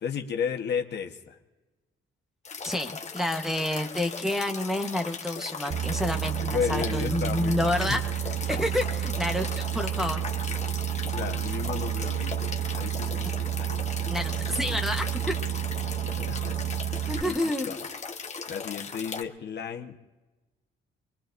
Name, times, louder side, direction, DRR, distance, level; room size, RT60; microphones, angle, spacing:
voice 1, 0.0-1.4 3.8-3.9 6.5-8.0 10.8-12.4 12.7-13.8 15.9-17.4 17.7-17.8 18.5-20.0, left 7 dB, 60° left, 4 dB, 1.3 m, -34 dB
sound 1, 2.4-19.2, left 5 dB, 35° left, 1.3 m, -38 dB
voice 2, 2.6-8.0 8.5-10.2 14.1-15.4 17.1-17.7, left 1 dB, ahead, 3 dB, 1.2 m, -29 dB
Boat Water vehicle, 5.7-17.2, right 12 dB, 55° right, 0.7 m, -30 dB
24.0 x 22.5 x 2.7 m, 1.1 s
cardioid pair, 90°, 20 cm